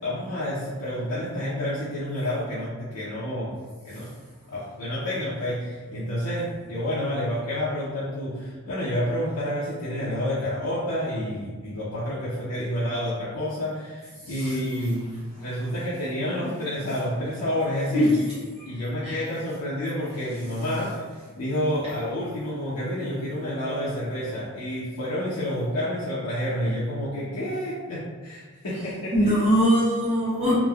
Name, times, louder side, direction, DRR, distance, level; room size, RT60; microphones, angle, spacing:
voice 1, 0.0-3.6 3.8-4.1 4.5-18.1 18.6-21.0 21.4-29.1, equal, 80° left, -8 dB, 0.5 m, -29 dB
voice 2, 14.2-14.6 17.9-18.1 18.6-18.7 19.0-19.3 29.1-30.5, equal, 25° right, -12 dB, 0.7 m, -22 dB
3.1 x 2.0 x 2.3 m, 1.4 s
head